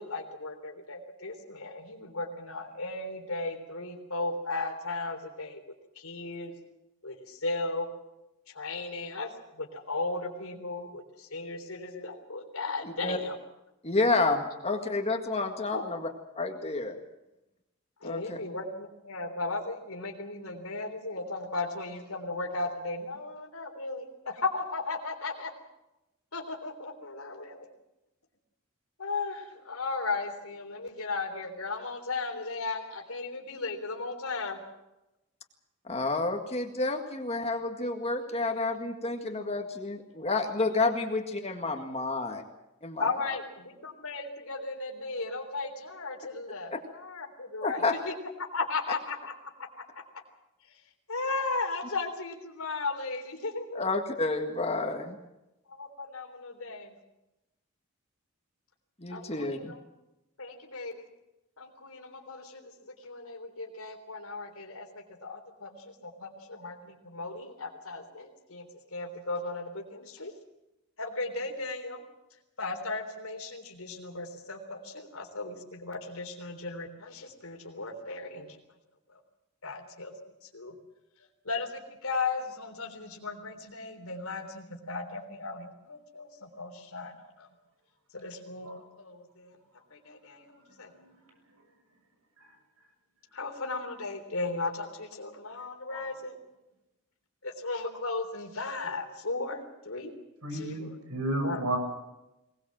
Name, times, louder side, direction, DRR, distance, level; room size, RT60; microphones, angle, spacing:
voice 1, 0.0-5.6 6.0-6.5 7.0-7.9 8.5-9.3 9.6-13.3 15.7-15.8 18.0-25.5 26.3-27.7 29.0-34.6 43.0-48.1 48.5-49.3 51.1-53.8 55.7-57.0 59.1-59.8 60.4-61.0 61.6-70.3 71.0-72.0 72.6-78.6 79.1-79.2 79.6-80.1 80.4-80.7 81.5-87.5 88.1-89.6 89.9-90.9 93.3-96.3 97.4-100.1 100.5-100.9 101.4-101.6, left 3 dB, 80° left, 3 dB, 3.6 m, -36 dB
voice 2, 12.8-13.2 13.8-16.1 16.4-17.0 18.0-18.4 35.9-42.4 42.8-43.1 47.6-48.0 53.7-55.2 59.0-59.7, left 3 dB, 30° left, 3 dB, 1.9 m, -30 dB
voice 3, 90.7-91.2 92.4-92.5 95.9-96.0 100.4-101.8, right 1 dB, 90° right, 5 dB, 6.7 m, -33 dB
22.5 x 19.5 x 7.6 m, 0.95 s
head